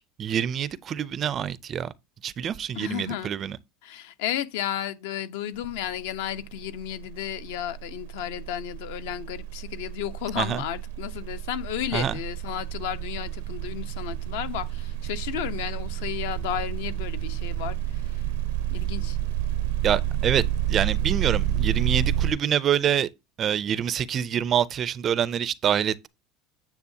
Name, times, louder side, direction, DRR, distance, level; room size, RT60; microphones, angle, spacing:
voice 1, 0.0-1.9 2.2-3.6 10.4-10.6 11.9-12.1 19.8-20.4 20.7-23.1 23.4-26.1, right 9 dB, 25° right, 0.4 m, -26 dB
voice 2, 2.7-3.3 3.8-18.2 18.7-19.2, left 11 dB, 75° left, 0.9 m, -33 dB
sound 1, 5.6-5.9 6.2-22.3, right 10 dB, 80° right, 0.6 m, -29 dB
9.4 x 7.3 x 2.7 m
cardioid pair, 180°, 0 cm